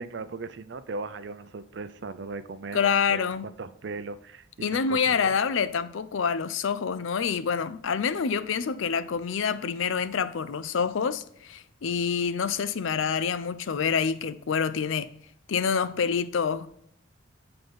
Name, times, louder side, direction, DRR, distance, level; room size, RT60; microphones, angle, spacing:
voice 1, 0.0-3.3 3.6-5.3, right 3 dB, 60° right, 0.5 m, -38 dB
voice 2, 2.7-3.5 4.6-15.1 15.5-16.7, left 6 dB, 75° left, 0.5 m, -27 dB
7.7 x 3.9 x 5.2 m
head